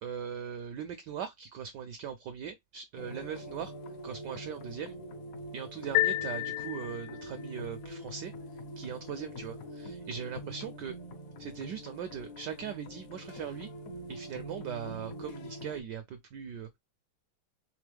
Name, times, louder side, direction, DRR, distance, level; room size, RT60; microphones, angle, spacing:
voice 1, 0.0-3.7 4.0-4.9 5.5-8.3 8.8-10.9 11.4-13.7 14.1-16.7, right 8 dB, 75° right, 1.0 m, -40 dB
sound 1, 2.9-15.8, equal, 55° left, 1.0 m, -44 dB
sound 2, 5.9-7.4, left 16 dB, 85° left, 1.5 m, -30 dB
3.7 x 3.5 x 3.4 m
omnidirectional pair, 2.3 m